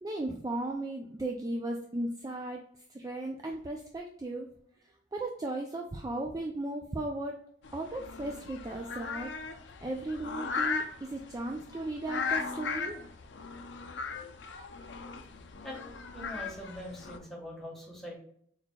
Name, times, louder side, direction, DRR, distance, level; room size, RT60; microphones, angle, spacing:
voice 1, 0.0-2.6 2.9-4.5 5.1-7.4 7.7-9.3 9.8-13.0, right 2 dB, 20° right, 1 dB, 0.4 m, -36 dB
sound 1, 7.6-17.2, left 5 dB, 70° left, 0.5 m, -38 dB
voice 2, 15.6-18.2, left 1 dB, ahead, -4 dB, 1.3 m, -43 dB
4.2 x 4.0 x 2.3 m, 0.66 s
head